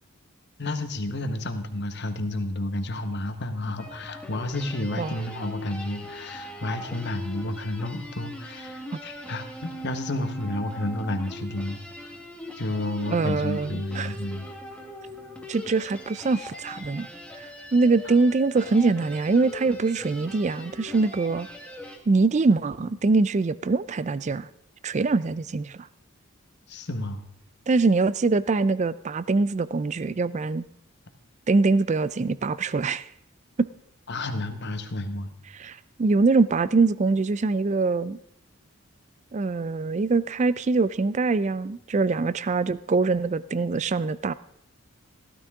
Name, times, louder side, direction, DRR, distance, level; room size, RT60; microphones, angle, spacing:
voice 1, 0.6-11.8 12.6-14.5 26.7-27.3 34.1-35.3, left 1 dB, 50° left, 8 dB, 1.2 m, -31 dB
sound 1, 3.8-22.0, equal, 5° left, 1.5 m, -41 dB
voice 2, 13.1-14.2 15.5-17.1 17.7-21.5 22.1-24.5 24.8-25.8 27.7-30.6 31.5-33.1 33.6-33.7 35.5-38.2 39.3-44.3, right 3 dB, 30° right, 17 dB, 0.4 m, -23 dB
15.0 x 13.0 x 3.6 m, 0.78 s
head